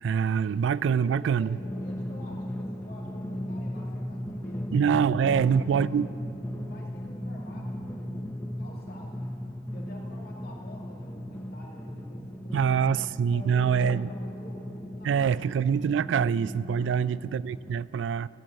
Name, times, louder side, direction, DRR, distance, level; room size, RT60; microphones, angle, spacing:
voice 1, 0.0-1.6 4.7-6.1 12.5-14.1 15.0-18.3, right 7 dB, 90° right, 19 dB, 0.3 m, -25 dB
voice 2, 0.8-4.7 5.0-6.3 6.5-9.3 9.7-12.9 13.3-15.4 16.8-17.2, left 1 dB, 55° left, -2 dB, 2.6 m, -48 dB
Drum, 1.6-17.7, equal, 10° left, 0.6 m, -37 dB
15.5 x 7.8 x 9.5 m, 2.7 s
head